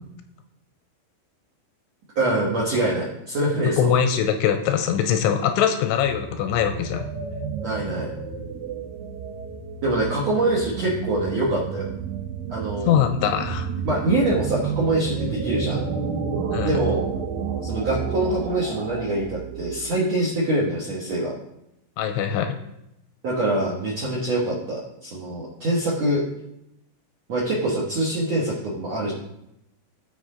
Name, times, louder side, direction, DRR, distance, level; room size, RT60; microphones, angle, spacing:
voice 1, 2.2-3.9 7.6-8.1 9.8-11.9 12.5-13.0 13.8-15.8 16.6-17.1 17.6-21.3 23.2-26.2 27.3-29.1, right 1 dB, 65° right, -5 dB, 1.6 m, -24 dB
voice 2, 3.8-7.1 12.9-13.7 16.5-16.8 22.0-22.6, left 9 dB, 85° left, 7 dB, 2.9 m, -22 dB
sound 1, 6.0-20.2, right 6 dB, 90° right, 1.9 m, -31 dB
16.0 x 5.3 x 3.8 m, 0.83 s
omnidirectional pair, 5.5 m